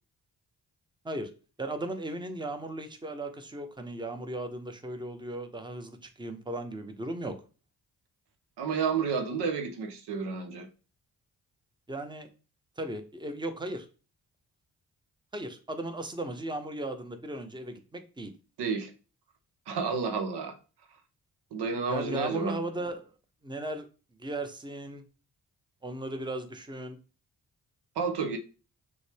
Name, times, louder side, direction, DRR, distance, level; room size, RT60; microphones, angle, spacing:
voice 1, 1.6-7.4 11.9-12.3 12.8-13.9 15.3-18.3 21.9-23.1 23.4-23.9 24.2-25.0 25.8-27.0, right 1 dB, 10° right, 0.8 m, -36 dB
voice 2, 8.6-10.7 18.6-18.9 19.7-20.5 21.5-22.6 28.0-28.4, right 5 dB, 80° right, 0.8 m, -30 dB
6.1 x 2.3 x 3.3 m
supercardioid pair, 45°, 40 cm